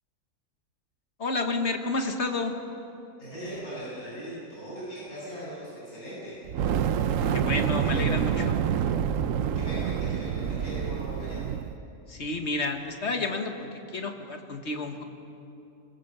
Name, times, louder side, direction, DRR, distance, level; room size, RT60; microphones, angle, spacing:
voice 1, 1.2-2.5 7.3-8.7 12.1-13.7 13.9-15.0, left 3 dB, 50° left, 5 dB, 1.7 m, -30 dB
voice 2, 3.2-6.4 7.8-8.0 9.5-11.4, right 1 dB, 80° left, -8 dB, 8.1 m, -39 dB
Fire, 6.5-11.7, right 8 dB, 65° right, 1.0 m, -27 dB
24.0 x 21.5 x 6.8 m, 2.8 s
omnidirectional pair, 1.5 m